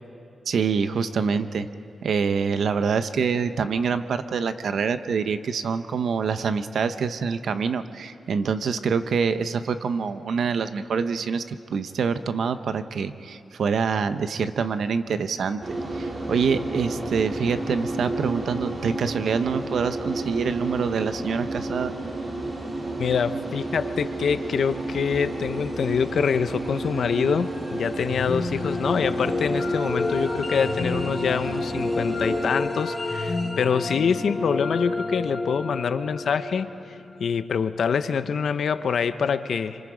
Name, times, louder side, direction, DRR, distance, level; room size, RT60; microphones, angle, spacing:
voice 1, 0.5-1.7 2.0-21.9, right 5 dB, 75° right, 10 dB, 0.8 m, -26 dB
sound 1, 15.6-32.5, right 2 dB, 45° right, 3.3 m, -32 dB
sound 2, 21.7-33.5, equal, 10° right, 3.5 m, -46 dB
voice 2, 23.0-39.8, left 6 dB, 70° left, 11 dB, 0.8 m, -25 dB
sound 3, 28.1-37.2, left 2 dB, 15° left, 2.8 m, -29 dB
27.5 x 25.0 x 5.1 m, 2.8 s
wide cardioid pair, 140°, 0 cm